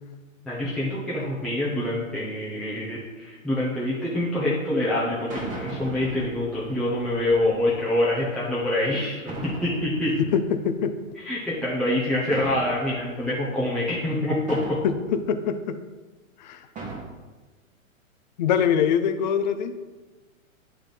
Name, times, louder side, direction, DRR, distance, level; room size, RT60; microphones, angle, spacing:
voice 1, 0.4-10.2 11.2-14.8, left 1 dB, ahead, -8 dB, 0.9 m, -26 dB
sound 1, 4.1-4.3 5.3-7.9 9.3-11.0 12.3-13.3 14.5-15.2 16.7-17.0, right 3 dB, 20° right, 1.5 m, -38 dB
voice 2, 10.3-10.9 14.8-15.8 16.4-16.6 18.4-19.7, left 7 dB, 35° left, 9 dB, 0.4 m, -23 dB
9.7 x 3.6 x 4.0 m, 1.3 s
hypercardioid pair, 125°, 41 cm